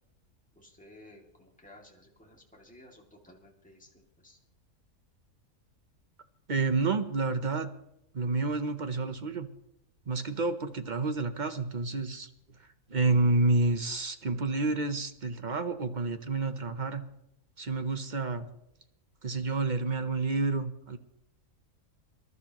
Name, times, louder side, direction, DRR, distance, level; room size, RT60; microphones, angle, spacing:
voice 1, 0.6-4.4, left 1 dB, 5° left, -1 dB, 2.3 m, -55 dB
voice 2, 6.5-7.7 8.1-9.5 10.1-12.3 12.6-17.0 17.6-18.5 19.2-21.0, right 3 dB, 40° right, 9 dB, 0.7 m, -29 dB
25.5 x 12.5 x 3.0 m, 0.83 s
omnidirectional pair, 1.5 m